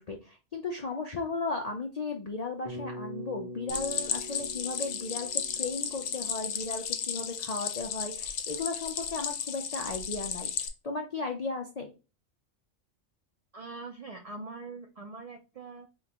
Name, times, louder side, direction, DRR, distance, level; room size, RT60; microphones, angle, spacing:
voice 1, 0.0-10.5 10.8-11.9, left 3 dB, 60° left, 3 dB, 0.4 m, -35 dB
Bass guitar, 2.6-7.0, left 1 dB, 35° left, 1.0 m, -44 dB
Stream, 3.7-10.7, left 8 dB, 85° left, 1.0 m, -34 dB
voice 2, 13.5-15.9, right 3 dB, 75° right, 4 dB, 0.3 m, -43 dB
5.1 x 2.4 x 2.9 m, 0.30 s
omnidirectional pair, 1.3 m